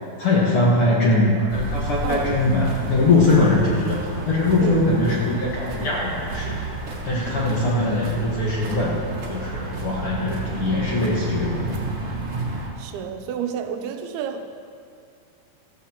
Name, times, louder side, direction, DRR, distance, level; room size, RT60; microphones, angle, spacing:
voice 1, 0.2-4.0 4.3-6.6 7.0-9.0 9.3-11.6, left 2 dB, 50° left, -5 dB, 1.8 m, -21 dB
sound 1, 1.5-12.7, right 2 dB, 45° right, 2.1 m, -31 dB
voice 2, 2.0-2.5 4.6-4.8 12.8-14.5, right 8 dB, 90° right, 6 dB, 2.7 m, -30 dB
15.5 x 14.5 x 2.9 m, 2.3 s
omnidirectional pair, 4.3 m